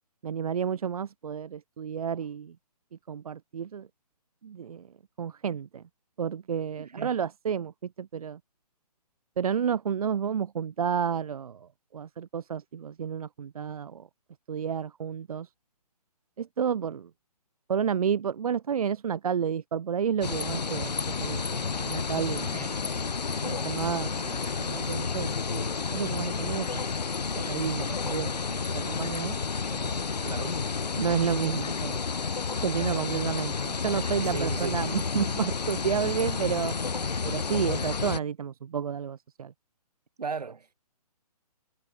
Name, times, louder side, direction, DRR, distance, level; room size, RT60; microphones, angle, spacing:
voice 1, 0.2-2.5 3.1-3.9 4.4-4.9 5.2-5.8 6.2-8.4 9.4-14.1 14.5-15.5 16.4-17.1 17.7-22.9 23.4-26.9 27.3-29.4 29.7-30.1 30.9-32.0 32.6-36.7 37.2-39.5, right 7 dB, 60° right, 1.4 m, -31 dB
voice 2, 6.8-7.2 22.5-22.7 30.2-30.6 34.2-34.8 40.2-40.7, right 5 dB, 80° right, 3.3 m, -36 dB
sound 1, 20.2-38.2, left 5 dB, 90° left, 1.0 m, -31 dB
hypercardioid pair, 140°, 20 cm